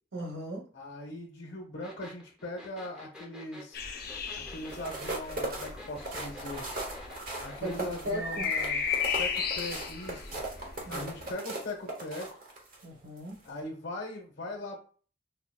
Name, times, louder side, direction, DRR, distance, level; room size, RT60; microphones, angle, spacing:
voice 1, 0.1-0.7 7.6-8.4 10.8-11.1 12.8-13.4, right 1 dB, 85° right, 0 dB, 1.3 m, -37 dB
voice 2, 0.7-3.8 4.3-6.7 7.4-8.9 9.2-10.4 10.9-12.3 13.4-14.8, left 1 dB, 70° left, 0 dB, 1.0 m, -40 dB
sound 1, 1.8-7.8, left 2 dB, 5° right, 0.7 m, -48 dB
sound 2, 3.7-11.3, left 6 dB, 50° left, 0.6 m, -36 dB
sound 3, 4.6-12.8 13.3-13.5, right 2 dB, 45° right, 1.0 m, -38 dB
5.7 x 2.2 x 2.3 m, 0.42 s
head